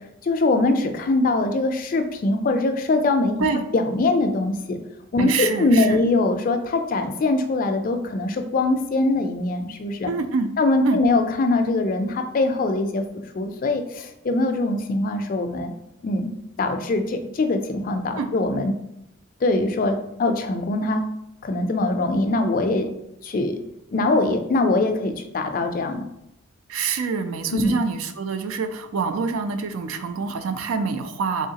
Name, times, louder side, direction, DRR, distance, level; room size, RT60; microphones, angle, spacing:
voice 1, 0.2-3.4 3.7-4.8 5.1-10.1 10.6-13.0 13.3-15.7 16.0-16.3 16.6-18.8 19.4-21.0 21.4-22.9 23.2-23.6 23.9-26.0 27.5-27.8, left 2 dB, 40° left, 6 dB, 0.3 m, -22 dB
voice 2, 5.2-6.0 10.1-10.5 10.8-11.0 18.2-18.3 26.7-31.5, right 5 dB, 85° right, 9 dB, 0.4 m, -26 dB
3.7 x 3.1 x 2.7 m, 0.83 s
head